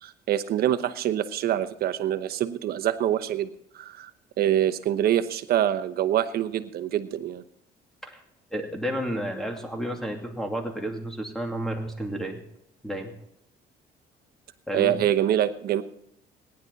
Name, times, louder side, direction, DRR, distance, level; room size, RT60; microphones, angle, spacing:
voice 1, 0.0-3.5 3.7-4.1 4.4-7.4 14.7-15.8, right 11 dB, 65° right, 12 dB, 1.0 m, -25 dB
voice 2, 8.5-12.4 12.8-13.1 14.7-15.0, equal, 5° left, 2 dB, 2.6 m, -31 dB
18.0 x 10.5 x 4.1 m, 0.75 s
cardioid pair, 110°, 17 cm